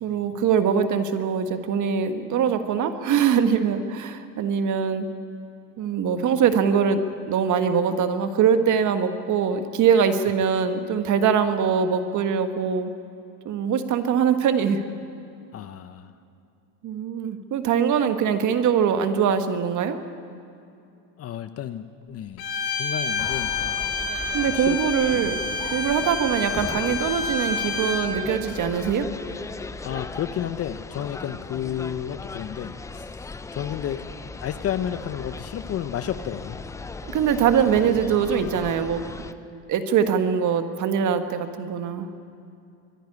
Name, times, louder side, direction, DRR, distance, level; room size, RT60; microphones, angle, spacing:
voice 1, 0.0-5.1 5.8-7.0 7.3-12.9 13.4-14.8 16.8-20.0 24.3-25.3 25.7-29.1 37.0-39.0 39.7-42.1, right 7 dB, 40° right, 8 dB, 1.6 m, -22 dB
voice 2, 15.5-16.1 21.2-23.8 24.5-25.6 29.8-34.1 34.4-36.6, left 10 dB, 30° left, 11 dB, 0.8 m, -32 dB
Bowed string instrument, 22.4-28.1, left 4 dB, 55° left, 2.8 m, -28 dB
sound 1, 23.2-39.3, left 3 dB, 5° left, 0.4 m, -38 dB
24.0 x 11.5 x 9.6 m, 2.6 s
supercardioid pair, 110°, 47 cm